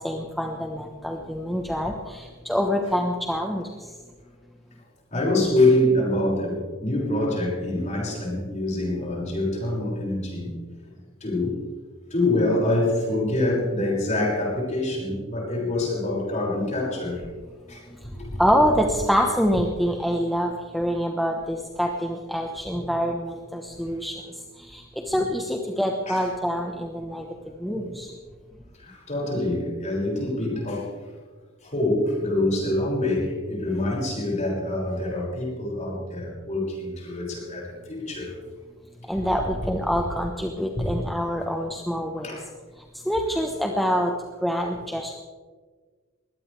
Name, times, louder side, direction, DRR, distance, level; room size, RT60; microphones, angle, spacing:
voice 1, 0.0-3.9 18.4-24.2 24.6-28.1 39.1-42.4 43.0-44.1 44.4-45.1, equal, ahead, 1 dB, 1.1 m, -26 dB
voice 2, 5.1-10.5 11.2-11.6 12.1-17.2 17.7-18.3 22.7-22.9 25.1-25.2 26.1-26.2 27.7-28.0 28.7-30.9 31.6-38.3 39.1-39.3 40.8-40.9 42.2-42.4, left 1 dB, 35° left, -3 dB, 6.4 m, -25 dB
22.0 x 17.5 x 3.4 m, 1.4 s
head